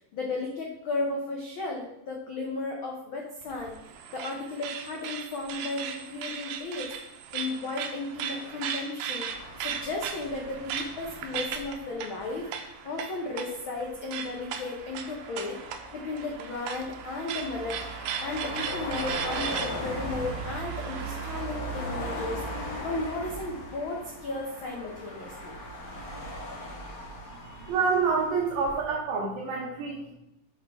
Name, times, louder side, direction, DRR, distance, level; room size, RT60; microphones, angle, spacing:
voice 1, 0.0-6.9 7.3-9.3 9.6-12.5 12.8-15.6 15.9-17.8 18.2-25.6, left 3 dB, 80° left, -1 dB, 1.1 m, -34 dB
sound 1, 3.4-21.6, right 7 dB, 85° right, 2.2 m, -37 dB
sound 2, 9.3-28.8, equal, 45° left, 1.2 m, -39 dB
voice 2, 27.6-30.1, right 5 dB, 70° right, -2 dB, 2.2 m, -27 dB
6.5 x 5.7 x 4.6 m, 0.88 s
omnidirectional pair, 3.6 m